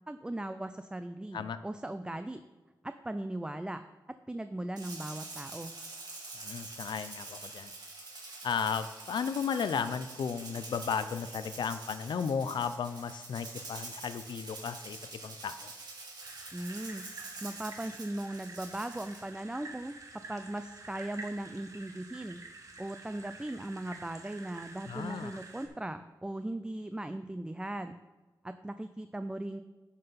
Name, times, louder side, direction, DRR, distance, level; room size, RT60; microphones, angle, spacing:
voice 1, 0.1-2.4 2.8-3.8 4.3-5.7 16.5-17.1 17.4-20.0 20.3-22.4 22.8-27.9 28.4-29.6, right 1 dB, 10° right, 10 dB, 0.4 m, -38 dB
Rattle (instrument), 4.8-19.3, right 3 dB, 65° right, 2.7 m, -46 dB
voice 2, 6.4-7.7 8.4-15.0 15.2-15.7 24.9-25.3, left 6 dB, 80° left, 12 dB, 0.5 m, -34 dB
sound 1, 16.2-25.7, right 3 dB, 45° right, 1.6 m, -49 dB
10.5 x 5.7 x 5.7 m, 1.3 s
wide cardioid pair, 105°, 8 cm